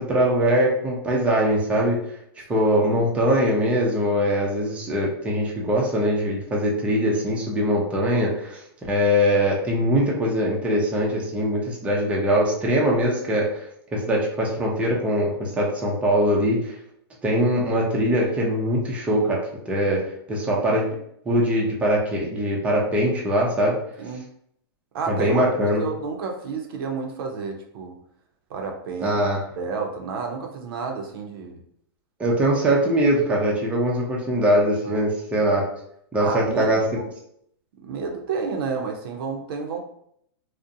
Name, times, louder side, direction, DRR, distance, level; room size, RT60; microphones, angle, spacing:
voice 1, 0.0-2.0 2.5-13.7 13.9-16.8 17.2-20.0 20.3-20.9 21.3-23.8 25.1-25.8 29.0-29.5 32.2-35.6 36.1-36.8, equal, 10° right, -3 dB, 0.5 m, -22 dB
voice 2, 24.9-28.0 28.5-29.2 29.6-31.6 34.8-35.0 36.2-36.8 37.8-39.8, right 5 dB, 60° right, 2 dB, 0.5 m, -30 dB
2.5 x 2.1 x 2.6 m, 0.71 s
hypercardioid pair, 140°, 13 cm